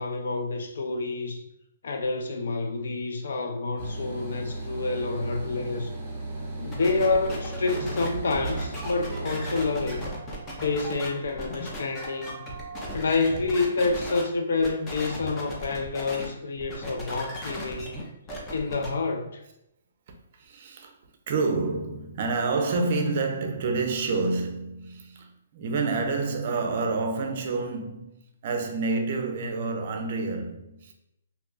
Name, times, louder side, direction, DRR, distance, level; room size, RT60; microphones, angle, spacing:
voice 1, 0.0-1.4 1.8-5.9 6.6-10.0 10.6-12.5 12.9-17.9 18.5-19.4, left 3 dB, 70° left, 0.4 m, -28 dB
sound 1, 3.8-10.1, right 2 dB, 25° right, 1.0 m, -35 dB
sound 2, 6.7-14.2 14.6-16.3 16.6-18.9, left 1 dB, 15° left, 0.5 m, -37 dB
voice 2, 8.4-8.9 9.6-13.0 20.3-20.9 21.3-28.2 28.4-30.9, right 3 dB, 45° right, 0.5 m, -30 dB
2.7 x 2.3 x 3.8 m
hypercardioid pair, 165°, 0 cm